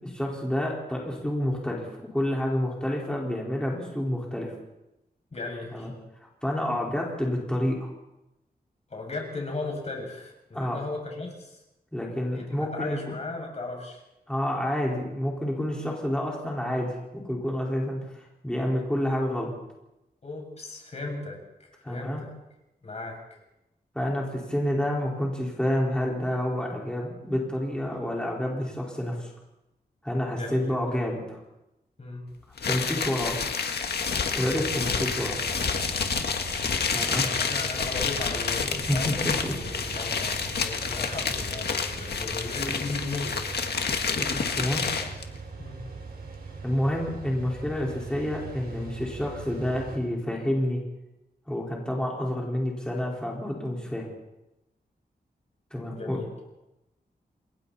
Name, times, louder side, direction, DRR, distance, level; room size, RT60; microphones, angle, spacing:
voice 1, 0.0-4.5 5.7-5.9 6.2-7.9 10.5-10.8 11.9-13.0 14.3-19.5 21.8-22.2 23.9-29.3 30.0-31.4 32.6-33.4 34.3-35.4 36.9-37.2 38.9-39.5 44.1-44.8 46.6-50.8 51.5-54.1 55.7-56.2, left 1 dB, 5° left, -3 dB, 4.7 m, -29 dB
voice 2, 5.3-5.9 8.9-11.6 12.4-12.5 12.7-14.0 20.2-22.3 22.8-23.2 30.3-30.8 32.0-32.2 34.7-34.9 37.1-43.4 45.0-45.1 45.6-45.8 55.8-56.3, left 3 dB, 40° left, 1 dB, 7.2 m, -36 dB
sound 1, 32.6-45.2, left 5 dB, 85° left, 1.8 m, -29 dB
sound 2, 34.4-50.0, right 4 dB, 70° right, 4.9 m, -41 dB
29.0 x 21.5 x 4.3 m, 0.91 s
wide cardioid pair, 120°, 16 cm